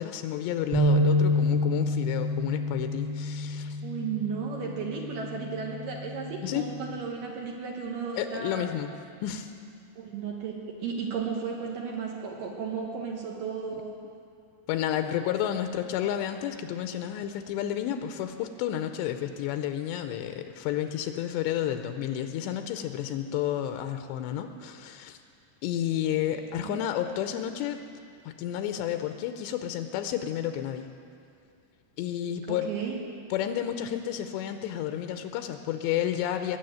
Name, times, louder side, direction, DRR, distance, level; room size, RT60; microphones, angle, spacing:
voice 1, 0.0-3.8 6.4-6.7 8.2-9.0 9.2-9.5 13.7-13.8 14.7-25.2 25.6-27.8 28.2-30.9 32.0-32.7 33.3-36.6, left 11 dB, 85° left, 7 dB, 2.9 m, -31 dB
sound 1, 0.7-7.0, left 1 dB, 35° right, 1.8 m, -28 dB
voice 2, 3.8-8.7 10.0-13.9 26.6-26.8 32.5-33.0, right 6 dB, 65° right, -1 dB, 2.5 m, -34 dB
20.5 x 7.1 x 9.1 m, 2.4 s
omnidirectional pair, 5.0 m